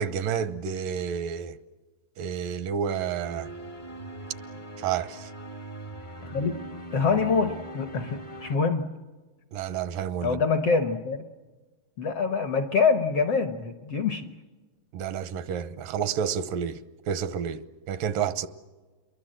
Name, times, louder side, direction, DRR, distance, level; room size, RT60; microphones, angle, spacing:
voice 1, 0.0-1.6 2.2-3.5 4.8-5.3 9.5-10.4 14.9-16.8 17.1-18.5, right 8 dB, 85° right, 2.6 m, -30 dB
sound 1, 3.2-8.6, right 2 dB, 35° left, 0.7 m, -40 dB
voice 2, 6.2-6.6 6.9-8.9 10.2-11.2 12.0-14.3, left 5 dB, 65° left, 1.6 m, -25 dB
28.5 x 22.5 x 7.7 m
omnidirectional pair, 3.8 m